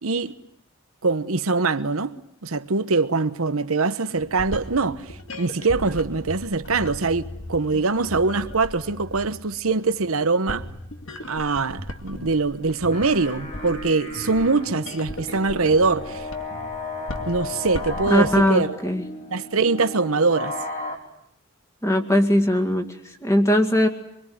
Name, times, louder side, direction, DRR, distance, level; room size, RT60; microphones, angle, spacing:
voice 1, 0.0-0.3 1.0-2.2 2.4-10.7 11.3-16.3 17.3-18.8 19.3-20.5, right 3 dB, 80° right, 1.0 m, -23 dB
sound 1, 4.2-18.5, left 1 dB, 65° left, 2.4 m, -38 dB
sound 2, 12.7-21.0, left 3 dB, 40° left, 4.2 m, -34 dB
voice 2, 18.1-19.0 21.8-22.9 23.2-23.9, left 1 dB, 15° left, 2.2 m, -19 dB
24.5 x 24.0 x 9.5 m
head